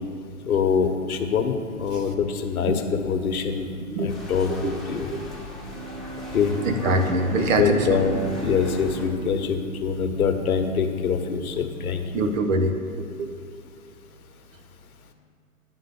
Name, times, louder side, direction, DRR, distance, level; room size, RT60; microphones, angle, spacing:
voice 1, 0.5-3.7 4.0-5.1 6.3-6.5 7.4-12.2, left 6 dB, 75° left, 6 dB, 1.0 m, -24 dB
sound 1, 4.1-9.1, left 2 dB, ahead, 1.2 m, -40 dB
Bowed string instrument, 5.6-10.5, right 2 dB, 35° right, 2.4 m, -37 dB
voice 2, 6.6-8.0 12.1-13.3, right 2 dB, 60° right, 6 dB, 1.1 m, -24 dB
10.5 x 3.9 x 7.0 m, 2.3 s
hypercardioid pair, 120°, 44 cm